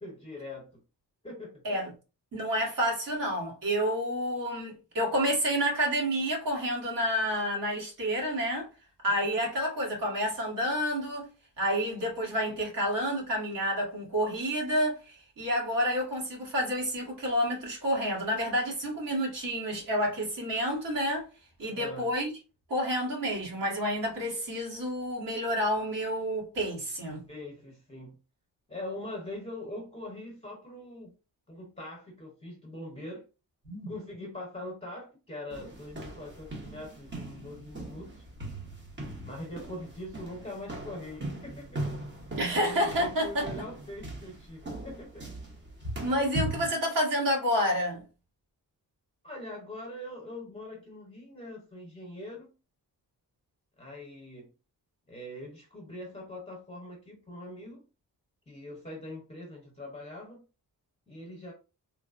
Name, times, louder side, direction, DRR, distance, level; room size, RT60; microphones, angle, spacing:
voice 1, 0.0-0.7 1.2-1.6 9.3-9.5 21.6-22.1 27.3-28.2 28.7-31.1 31.5-33.3 33.9-38.2 39.2-41.8 42.5-45.2 49.2-52.5 53.8-54.5 55.1-57.8 58.5-60.4 61.1-61.5, left 1 dB, 20° left, 0.9 m, -42 dB
voice 2, 2.3-8.7 9.0-11.3 11.6-21.3 21.6-22.3 22.7-27.2 33.6-33.9 42.4-43.5 46.0-48.0, equal, 65° right, 1.4 m, -29 dB
sound 1, 35.5-46.7, right 1 dB, 30° right, 0.9 m, -39 dB
3.2 x 2.1 x 2.4 m
wide cardioid pair, 140°, 35 cm